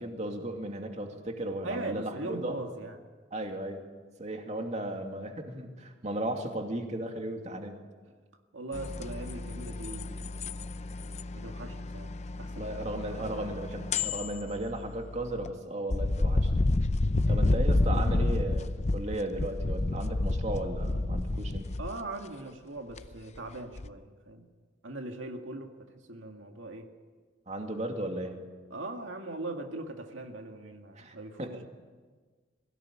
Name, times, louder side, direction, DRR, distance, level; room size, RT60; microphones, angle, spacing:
voice 1, 0.0-2.5 3.3-3.8 4.2-7.8 12.6-16.5 17.3-21.7 27.5-28.4 31.0-31.5, right 1 dB, 35° right, 3 dB, 2.5 m, -35 dB
voice 2, 1.6-3.0 8.5-10.4 11.3-12.1 12.4-12.8 13.1-13.5 13.8-13.9 17.2-17.4 21.8-24.5 24.8-25.7 26.1-26.9 28.7-31.5, right 2 dB, 90° right, 4 dB, 2.0 m, -40 dB
sound 1, 8.7-15.5 15.9-22.0 23.0-23.4 23.8-23.9, left 2 dB, 35° left, 0.6 m, -30 dB
23.5 x 16.5 x 10.0 m, 1.5 s
head